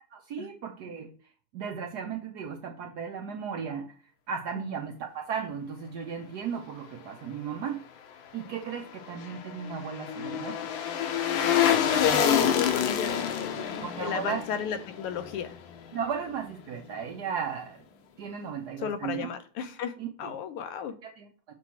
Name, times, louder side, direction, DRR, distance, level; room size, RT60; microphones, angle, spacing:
voice 1, 0.1-1.1 1.5-4.0 4.3-7.8 8.3-10.9 13.8-14.4 15.9-17.8 18.2-19.3 20.0-20.3 21.0-21.5, right 7 dB, 70° right, 0.9 m, -35 dB
sound 1, 8.8-16.0 16.3-16.4, left 9 dB, 70° left, 1.5 m, -28 dB
voice 2, 11.3-15.6 18.8-19.9 20.2-20.9, left 8 dB, 90° left, 1.7 m, -33 dB
6.0 x 3.1 x 5.7 m
omnidirectional pair, 2.4 m